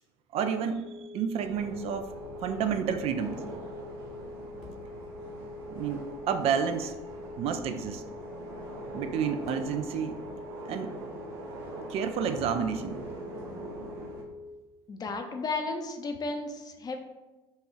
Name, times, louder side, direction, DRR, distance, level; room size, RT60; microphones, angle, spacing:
voice 1, 0.3-0.9 1.1-2.1 2.4-3.4 5.7-6.9 7.4-8.0 8.9-10.2 10.7-10.9 11.9-13.0, right 7 dB, 45° right, 8 dB, 0.4 m, -30 dB
sound 1, 0.7-1.0 2.7-3.0 4.6-4.8 5.9-6.1 7.6-8.0 9.4-10.3 10.6-10.7 12.4-13.0, left 1 dB, 50° left, 0.8 m, -47 dB
sound 2, 0.8-14.6, left 4 dB, 85° left, 0.8 m, -45 dB
sound 3, 1.3-14.2, right 3 dB, 75° right, 0.9 m, -43 dB
voice 2, 14.9-17.0, left 3 dB, 30° left, 5 dB, 0.6 m, -34 dB
5.5 x 2.3 x 3.0 m, 1.1 s
figure-of-eight pair, 65°, 14 cm